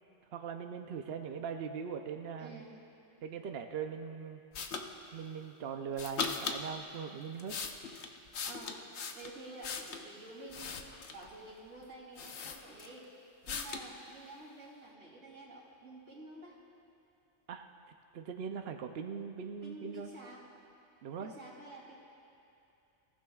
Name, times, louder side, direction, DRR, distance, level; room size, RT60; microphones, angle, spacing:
voice 1, 0.3-2.6 3.2-4.4 5.1-7.6 17.5-17.7 18.1-20.1 21.0-21.3, right 6 dB, 60° right, 5 dB, 0.8 m, -40 dB
voice 2, 2.4-2.8 3.8-3.9 8.4-10.8 11.1-13.1 13.5-16.6 19.6-20.4 21.2-21.9, right 2 dB, 90° right, -4 dB, 3.3 m, -50 dB
sound 1, 4.5-4.9 5.9-6.6 7.2-10.1 10.5-11.3 11.8-11.9 12.2-13.0 13.5-13.9, left 5 dB, 65° left, 1.1 m, -39 dB
26.0 x 15.0 x 2.4 m, 2.6 s
omnidirectional pair, 1.3 m